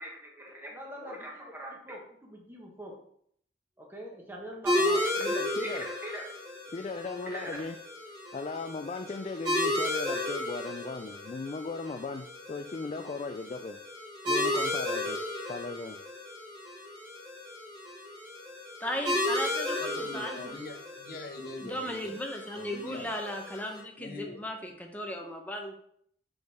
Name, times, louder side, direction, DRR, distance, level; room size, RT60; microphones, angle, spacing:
voice 1, 0.0-2.9 3.8-5.2 5.6-6.3 7.3-7.6, equal, 10° right, -1 dB, 1.3 m, -42 dB
sound 1, 4.6-23.8, left 1 dB, 25° right, 2.4 m, -34 dB
voice 2, 5.2-5.9 6.7-7.8 8.3-13.8 14.3-15.2 15.5-16.0, left 3 dB, 35° left, 6 dB, 0.3 m, -37 dB
voice 3, 18.8-20.6 21.6-25.7, equal, 10° left, 2 dB, 0.8 m, -36 dB
voice 4, 19.8-22.2 22.5-23.1 24.0-24.5, left 2 dB, 55° left, 3 dB, 1.0 m, -43 dB
6.1 x 5.2 x 3.5 m, 0.66 s
head